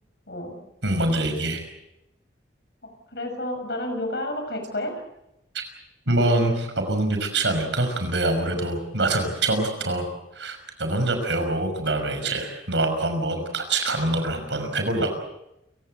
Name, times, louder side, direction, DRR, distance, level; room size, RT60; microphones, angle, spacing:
voice 1, 0.8-1.6 6.1-10.1 10.3-15.1, right 2 dB, 85° right, 6 dB, 6.0 m, -24 dB
voice 2, 2.8-4.9, left 1 dB, 65° left, 5 dB, 7.0 m, -30 dB
29.0 x 17.0 x 8.0 m, 0.88 s
head